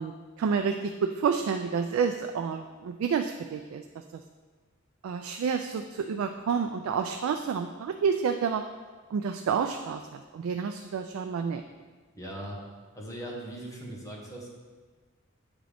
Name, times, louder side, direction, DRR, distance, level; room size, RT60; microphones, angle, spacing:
voice 1, 0.0-4.2 5.0-8.6 9.1-11.6, right 6 dB, 90° right, 7 dB, 0.3 m, -29 dB
voice 2, 12.1-12.6 12.9-14.5, right 1 dB, 15° left, -3 dB, 1.1 m, -39 dB
8.0 x 3.8 x 3.3 m, 1.4 s
head